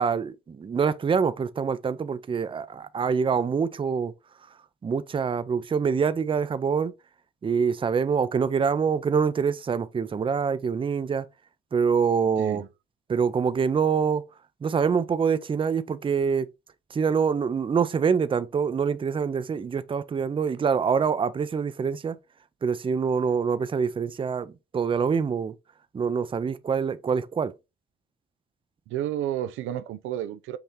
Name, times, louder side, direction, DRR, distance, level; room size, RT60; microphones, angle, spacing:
voice 1, 0.0-4.1 4.8-6.9 7.4-11.3 11.7-12.6 13.1-14.3 14.6-16.5 16.9-22.2 22.6-25.5 25.9-27.5, right 6 dB, 25° right, 0.5 m, -25 dB
voice 2, 28.9-30.6, right 12 dB, 90° right, 0.5 m, -31 dB
5.8 x 2.8 x 3.2 m
cardioid pair, 90°, 20 cm